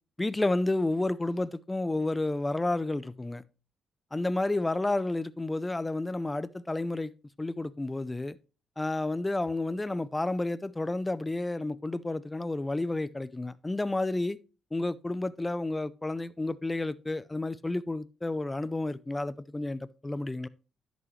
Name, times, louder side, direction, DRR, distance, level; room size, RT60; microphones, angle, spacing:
voice 1, 0.2-3.4 4.1-7.1 7.4-8.4 8.8-14.4 14.7-20.5, left 2 dB, 15° left, 0.5 m, -31 dB
10.5 x 6.2 x 3.1 m
cardioid pair, 90°, 0 cm